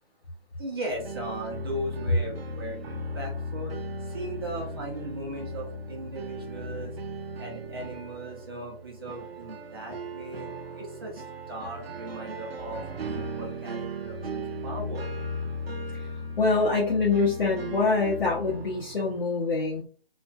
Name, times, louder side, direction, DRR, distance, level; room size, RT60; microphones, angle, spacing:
voice 1, 0.6-6.9 7.4-15.0, right 1 dB, 25° right, -2 dB, 0.6 m, -38 dB
sound 1, 0.9-19.2, equal, 80° right, 0.5 m, -37 dB
voice 2, 16.4-19.8, left 4 dB, 60° left, -4 dB, 0.8 m, -25 dB
2.5 x 2.4 x 2.2 m, 0.40 s
figure-of-eight pair, 160°, 30 cm